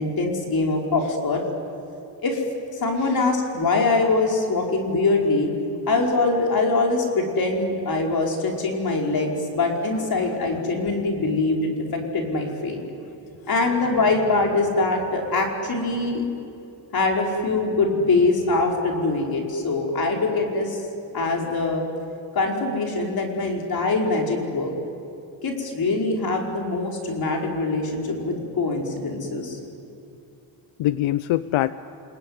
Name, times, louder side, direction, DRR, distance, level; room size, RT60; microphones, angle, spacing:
voice 1, 0.0-1.4 2.2-2.4 2.7-5.5 5.9-12.8 13.5-16.2 16.9-20.8 21.1-21.8 22.3-24.8 25.4-29.6, left 3 dB, 50° left, 0 dB, 5.0 m, -23 dB
voice 2, 10.0-10.4 13.5-13.7 30.8-31.7, left 14 dB, 90° left, 14 dB, 0.7 m, -25 dB
29.5 x 20.0 x 9.7 m, 2.6 s
cardioid pair, 105°, 46 cm